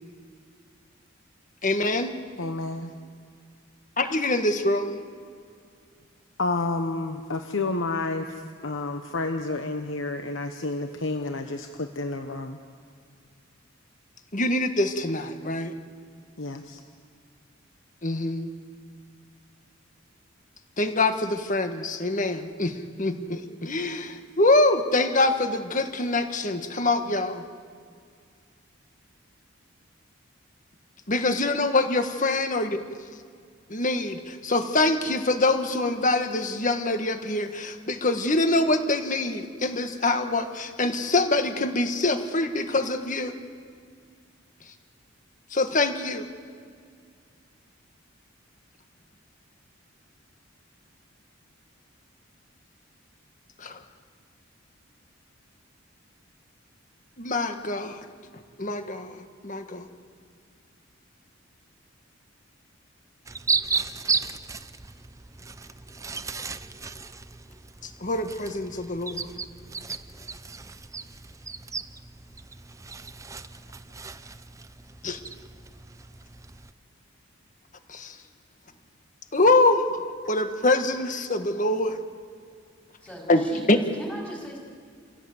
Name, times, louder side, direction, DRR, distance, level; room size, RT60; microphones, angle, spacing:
voice 1, 1.6-2.1 4.0-5.0 14.3-15.7 18.0-18.5 20.8-27.4 31.1-32.8 33.7-43.3 45.5-46.3 53.6-53.8 57.2-58.0 58.3-59.9 67.8-69.3 75.0-75.2 77.9-78.2 79.3-82.0 83.3-83.8, left 2 dB, 40° left, 7 dB, 1.6 m, -25 dB
voice 2, 2.4-2.9 6.4-12.6 16.4-16.8, left 3 dB, 70° left, 5 dB, 1.1 m, -30 dB
sound 1, 63.3-76.7, right 5 dB, 15° right, 0.5 m, -34 dB
voice 3, 83.0-84.6, equal, 5° left, -3 dB, 4.8 m, -39 dB
28.0 x 16.5 x 8.0 m, 2.2 s
head